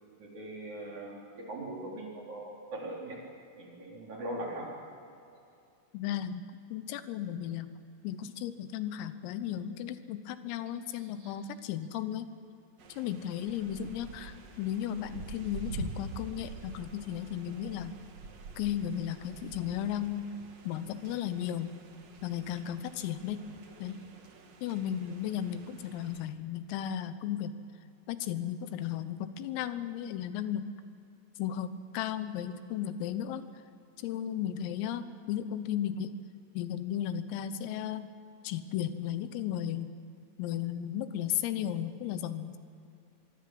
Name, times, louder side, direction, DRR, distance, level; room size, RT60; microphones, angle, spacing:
voice 1, 0.2-3.2 3.6-4.7 11.2-11.3, right 1 dB, 40° right, -2 dB, 4.7 m, -40 dB
voice 2, 5.9-6.5 6.7-7.7 8.0-12.3 12.9-17.9 18.6-20.3 20.7-21.8 22.2-23.5 23.8-24.1 24.6-27.6 28.1-30.6 31.4-33.5 34.0-36.1 36.6-38.1 38.4-39.9 40.4-42.6, left 10 dB, 85° left, 11 dB, 3.7 m, -35 dB
sound 1, 12.8-26.2, right 3 dB, 60° right, 1.6 m, -47 dB
24.5 x 23.5 x 7.8 m, 2.6 s
omnidirectional pair, 5.9 m